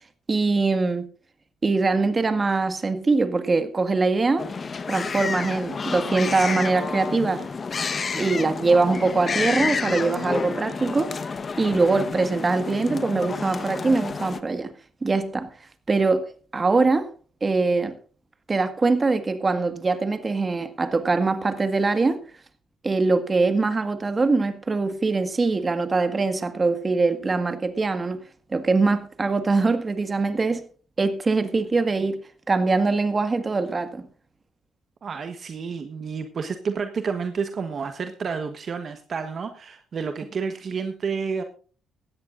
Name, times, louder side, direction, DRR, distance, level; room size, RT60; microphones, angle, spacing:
voice 1, 0.3-1.1 1.6-4.5 4.9-7.4 8.1-11.2 11.6-14.7 15.0-15.5 15.9-16.2 16.5-17.1 17.4-18.0 18.5-22.2 22.8-28.2 28.5-30.6 31.0-32.2 32.5-34.0, right 3 dB, 30° right, 1.8 m, -22 dB
sound 1, 4.4-14.4, left 5 dB, 40° left, 1.2 m, -30 dB
voice 2, 35.0-41.4, right 5 dB, 50° right, 1.3 m, -30 dB
17.5 x 13.5 x 2.6 m
cardioid pair, 90°, 0 cm